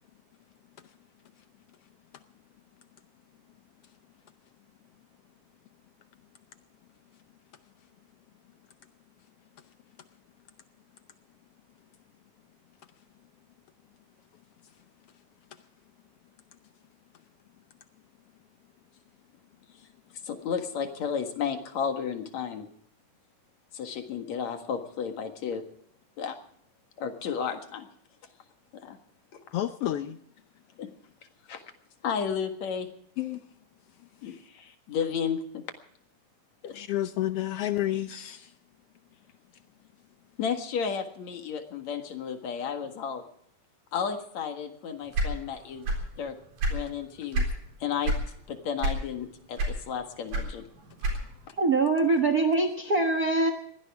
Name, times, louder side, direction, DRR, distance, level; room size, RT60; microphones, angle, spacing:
voice 1, 20.2-22.7 23.7-25.6 26.2-26.4 27.0-27.9 28.7-29.0 30.8-30.9 31.5-31.6 32.0-32.9 34.2-35.6 36.6-36.7 40.4-43.2 43.9-45.9 46.2-46.4 46.7-47.5 47.8-48.2 48.5-50.6, left 7 dB, 60° left, 6 dB, 2.9 m, -33 dB
voice 2, 29.5-30.2 33.2-33.4 34.0-34.4 36.6-38.6, left 13 dB, 90° left, 9 dB, 1.3 m, -31 dB
sound 1, 45.1-46.1 46.4-47.6 48.0-48.3 48.8-49.2 49.6-51.5, right 1 dB, 80° right, 5.5 m, -28 dB
voice 3, 51.6-53.5, right 3 dB, 50° right, 7 dB, 1.1 m, -23 dB
22.0 x 17.0 x 3.6 m, 0.66 s
omnidirectional pair, 3.7 m